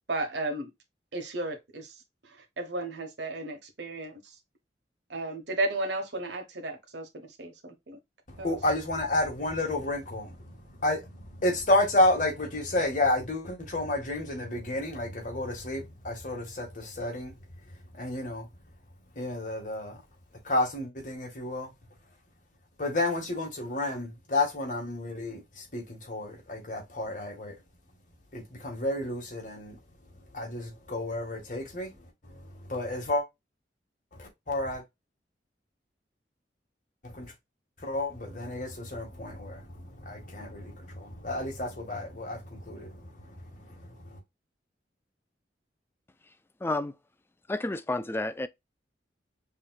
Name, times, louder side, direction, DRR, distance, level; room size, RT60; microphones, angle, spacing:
voice 1, 0.1-0.7 1.1-4.4 5.1-8.0 8.4-8.6, right 2 dB, 80° right, 1.3 m, -34 dB
voice 2, 8.3-17.3 17.9-18.5 19.2-20.0 20.4-21.7 22.8-27.5 28.3-29.8 30.3-31.9 32.2-33.2 34.1-34.8 37.0-37.3 37.8-44.2, left 1 dB, 45° left, 1.8 m, -31 dB
voice 3, 46.6-46.9 47.5-48.5, left 2 dB, 15° left, 0.4 m, -30 dB
5.6 x 3.2 x 2.3 m
head